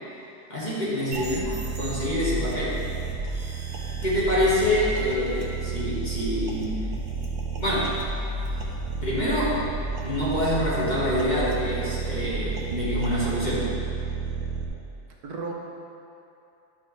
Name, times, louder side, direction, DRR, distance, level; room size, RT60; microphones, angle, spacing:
voice 1, 0.5-1.5 1.8-2.8 4.0-6.9 7.6-7.9 9.0-9.6 10.0-13.7, left 1 dB, 30° left, -9 dB, 1.9 m, -26 dB
sound 1, 1.1-14.6, right 4 dB, 60° right, 1.2 m, -31 dB
voice 2, 1.1-1.5 15.2-15.5, right 4 dB, 75° right, -1 dB, 1.3 m, -33 dB
11.0 x 5.9 x 3.3 m, 2.7 s
omnidirectional pair, 1.7 m